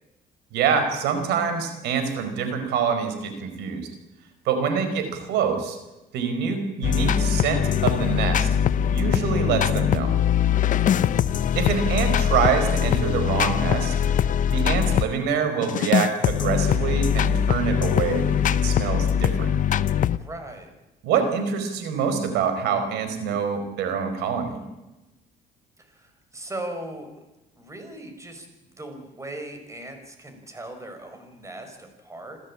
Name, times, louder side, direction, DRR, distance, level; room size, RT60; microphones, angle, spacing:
voice 1, 0.5-3.9 4.4-5.8 6.1-8.5 8.9-10.1 11.5-13.9 14.5-19.5 21.0-24.6, right 6 dB, 85° right, 8 dB, 4.8 m, -25 dB
sound 1, 6.8-15.1 15.6-20.2, left 9 dB, 50° left, 0.8 m, -22 dB
voice 2, 10.7-11.2 20.1-20.7 25.8-27.1 27.6-32.4, right 1 dB, 15° right, 6 dB, 5.7 m, -39 dB
27.5 x 14.0 x 8.8 m, 1.0 s
cardioid pair, 110°, 17 cm